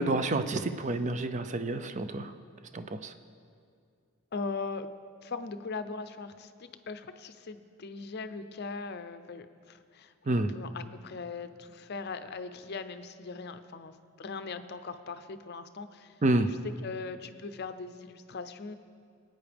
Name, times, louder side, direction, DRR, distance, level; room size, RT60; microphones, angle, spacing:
voice 1, 0.0-2.3 2.7-3.1 10.3-10.5 16.2-16.5, right 2 dB, 35° right, 9 dB, 0.5 m, -29 dB
voice 2, 4.3-4.9 5.2-16.1 16.4-18.7, left 4 dB, 50° left, 10 dB, 0.6 m, -40 dB
21.5 x 9.1 x 3.4 m, 2.3 s
head